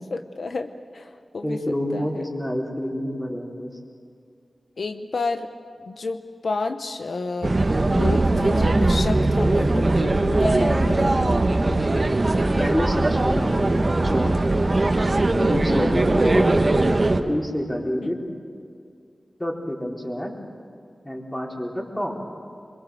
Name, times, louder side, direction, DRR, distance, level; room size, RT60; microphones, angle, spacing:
voice 1, 0.1-1.6 1.9-2.2 4.8-5.5 5.8-7.6 7.9-11.3 15.3-15.8, left 3 dB, 80° left, 7 dB, 0.9 m, -31 dB
voice 2, 1.4-3.7 12.6-14.4 15.4-16.5 17.3-18.2 19.4-20.3 21.0-21.7 21.9-22.3, equal, 15° left, -1 dB, 4.2 m, -27 dB
sound 1, 7.4-17.2, right 2 dB, 40° right, 1.6 m, -20 dB
25.0 x 23.0 x 7.7 m, 2.3 s
wide cardioid pair, 80°, 0 cm